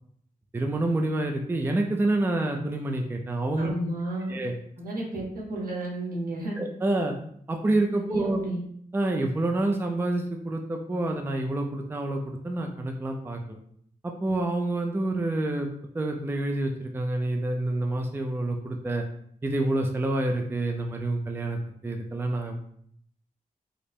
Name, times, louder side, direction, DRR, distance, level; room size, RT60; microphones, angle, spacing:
voice 1, 0.5-3.7 4.3-4.5 6.6-7.1 7.5-8.4 8.9-13.6 14.0-15.7 15.9-19.0 19.4-22.6, right 2 dB, 15° right, 3 dB, 0.4 m, -28 dB
voice 2, 3.6-4.4 4.8-6.6 8.0-8.6, right 1 dB, 80° right, -3 dB, 1.7 m, -32 dB
5.1 x 2.0 x 4.3 m, 0.67 s
wide cardioid pair, 155°, 15 cm